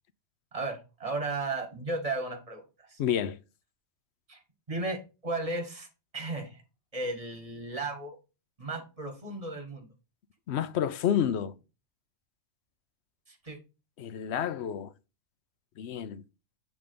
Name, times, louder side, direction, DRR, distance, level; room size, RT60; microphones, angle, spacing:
voice 1, 0.5-3.0 4.3-4.4 4.7-5.9 6.1-6.6 6.9-8.2 8.6-9.9 13.3-13.6, right 2 dB, 25° right, 1.5 m, -35 dB
voice 2, 3.0-3.4 10.5-11.5 14.0-14.9 15.8-16.2, left 9 dB, 65° left, 0.7 m, -29 dB
8.1 x 3.6 x 5.2 m
omnidirectional pair, 1.4 m